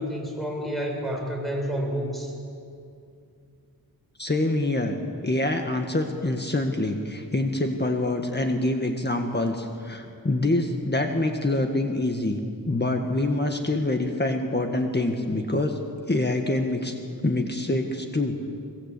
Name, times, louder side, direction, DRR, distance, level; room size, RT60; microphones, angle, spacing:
voice 1, 0.0-2.3, equal, ahead, 0 dB, 7.0 m, -29 dB
voice 2, 4.2-12.4 12.7-15.8 16.1-16.9 17.2-18.5, left 2 dB, 25° left, 4 dB, 1.9 m, -25 dB
23.0 x 23.0 x 8.6 m, 2.4 s
wide cardioid pair, 90°, 37 cm